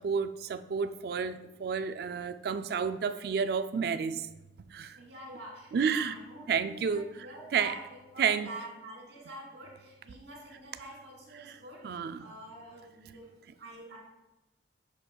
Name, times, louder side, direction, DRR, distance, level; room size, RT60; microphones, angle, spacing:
voice 1, 0.0-4.3 4.7-5.0 5.7-6.1 6.5-7.1 7.5-7.7 8.2-8.5 11.8-12.2, right 6 dB, 55° right, 11 dB, 0.3 m, -30 dB
voice 2, 4.9-13.3 13.6-14.0, right 2 dB, 75° right, -2 dB, 2.5 m, -46 dB
9.8 x 6.0 x 2.3 m, 1.0 s
head